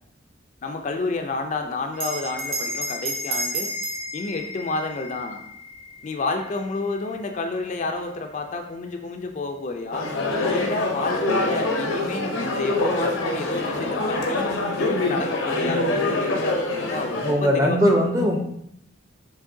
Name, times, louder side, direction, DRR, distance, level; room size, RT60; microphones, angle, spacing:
voice 1, 0.6-3.7 4.1-5.4 6.0-10.1 10.5-18.0, left 3 dB, 40° left, 5 dB, 0.4 m, -30 dB
Bell, 1.9-6.8, right 1 dB, 50° right, 0.8 m, -32 dB
sound 1, 9.9-17.3, left 2 dB, 85° left, 0.8 m, -25 dB
voice 2, 17.2-18.4, equal, 15° right, 2 dB, 0.5 m, -19 dB
6.2 x 3.1 x 2.6 m, 0.75 s
head